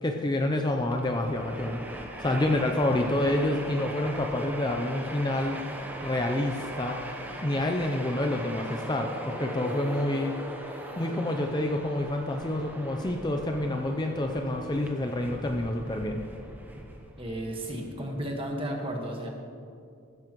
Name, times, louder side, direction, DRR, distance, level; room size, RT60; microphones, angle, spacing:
voice 1, 0.0-1.8 2.2-5.6 6.0-7.0 7.4-10.3 11.0-16.2, left 1 dB, 20° left, 3 dB, 0.5 m, -28 dB
Train, 0.7-18.3, right 1 dB, 10° right, 0.8 m, -40 dB
voice 2, 17.2-19.3, right 1 dB, 25° right, 1 dB, 1.5 m, -33 dB
15.0 x 13.5 x 3.1 m, 2.5 s
head